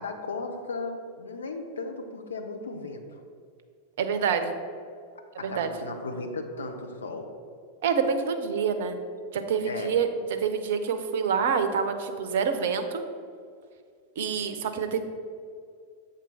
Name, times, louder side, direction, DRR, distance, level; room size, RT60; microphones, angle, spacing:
voice 1, 0.0-3.2 5.4-7.3 9.6-10.0, left 3 dB, 70° left, 4 dB, 0.8 m, -36 dB
voice 2, 4.0-4.5 5.4-5.7 7.8-9.0 9.3-13.0 14.2-15.0, right 6 dB, 55° right, 8 dB, 0.6 m, -27 dB
7.4 x 3.8 x 5.6 m, 2.2 s
figure-of-eight pair, 90°, 0 cm